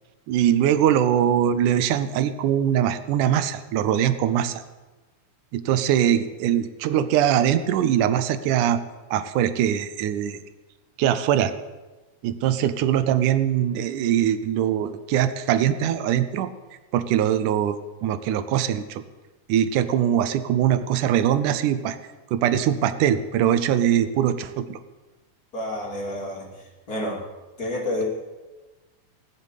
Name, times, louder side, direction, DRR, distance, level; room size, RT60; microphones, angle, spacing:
voice 1, 0.3-4.6 5.5-8.8 9.1-10.4 11.0-11.5 12.2-16.5 16.9-19.0 19.5-22.0 22.3-24.8, right 10 dB, 90° right, 12 dB, 2.3 m, -22 dB
voice 2, 25.5-26.4 26.9-27.2 27.6-28.0, left 1 dB, 30° left, -2 dB, 3.4 m, -28 dB
19.0 x 7.3 x 8.3 m, 1.2 s
omnidirectional pair, 3.5 m